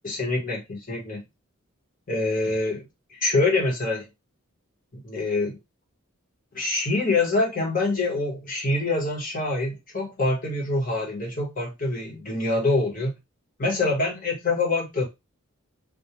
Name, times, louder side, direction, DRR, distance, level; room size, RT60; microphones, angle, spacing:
voice 1, 0.0-1.2 2.1-4.1 4.9-5.6 6.5-13.1 13.6-15.1, left 2 dB, 40° left, 0.9 m, -25 dB
2.2 x 2.2 x 2.8 m
head